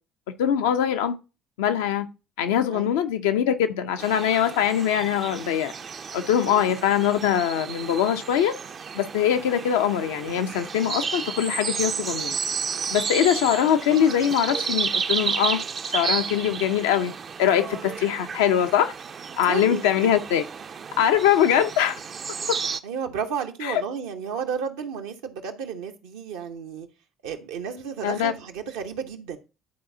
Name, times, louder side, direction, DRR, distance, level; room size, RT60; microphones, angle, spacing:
voice 1, 0.4-1.2 1.6-2.1 2.4-5.7 6.1-8.5 8.9-12.4 12.9-15.6 15.9-17.1 17.4-18.9 19.4-20.4 21.0-22.0 23.6-23.8 28.0-28.3, left 9 dB, 80° left, 0.5 m, -22 dB
sound 1, 4.0-22.8, right 6 dB, 45° right, 0.5 m, -32 dB
voice 2, 6.5-6.8 19.4-19.8 22.8-26.9 27.2-29.4, right 7 dB, 80° right, 0.8 m, -32 dB
11.5 x 4.1 x 2.7 m
hypercardioid pair, 60°, 0 cm